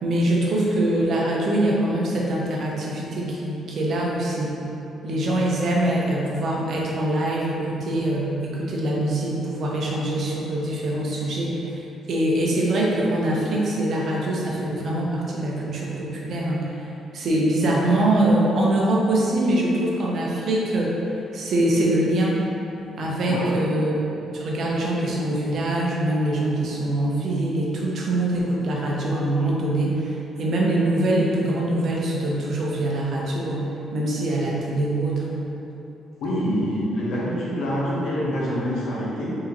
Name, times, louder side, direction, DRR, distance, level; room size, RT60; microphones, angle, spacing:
voice 1, 0.0-4.6 5.0-21.0 21.3-22.4 23.0-24.0 24.3-35.5, right 1 dB, 60° right, -3 dB, 0.7 m, -23 dB
voice 2, 23.3-23.6 36.2-39.3, equal, 80° left, -6 dB, 0.8 m, -26 dB
3.7 x 2.8 x 2.8 m, 2.9 s
cardioid pair, 90°, 0 cm